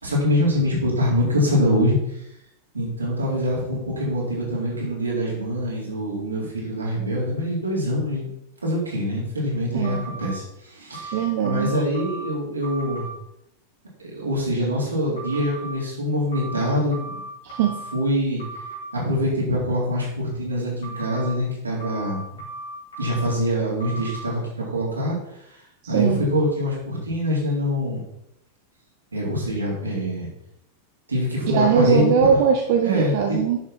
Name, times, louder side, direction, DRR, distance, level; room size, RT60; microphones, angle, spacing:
voice 1, 0.0-2.2 2.7-8.3 8.6-13.1 14.0-17.2 17.9-18.4 18.9-22.2 23.0-28.0 29.1-30.3 31.1-32.1 32.8-33.5, equal, 80° right, -4 dB, 3.9 m, -24 dB
voice 2, 9.7-10.1 11.1-11.7 17.4-17.8 25.8-26.2 31.5-33.6, right 7 dB, 50° right, 3 dB, 1.0 m, -21 dB
sound 1, 9.8-10.3 10.9-12.3 12.6-13.1 15.2-15.7 16.3-17.9 18.4-18.8 20.8-21.3 21.8-23.3 23.8-24.3, right 2 dB, 65° left, 3.5 m, -36 dB
10.5 x 7.0 x 4.4 m, 0.80 s
figure-of-eight pair, 90°, 0 cm